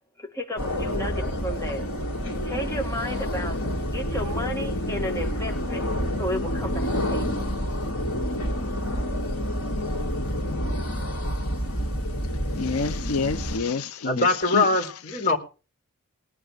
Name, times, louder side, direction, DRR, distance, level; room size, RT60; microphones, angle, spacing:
voice 1, 0.2-1.9 2.4-5.9 6.2-7.5, equal, 15° left, 1.5 m, -33 dB
sound 1, 0.6-13.6, equal, 70° left, 3.2 m, -28 dB
voice 2, 12.6-14.9, left 4 dB, 90° left, 0.7 m, -28 dB
voice 3, 14.0-15.4, left 3 dB, 45° left, 4.1 m, -22 dB
19.0 x 9.5 x 5.2 m
head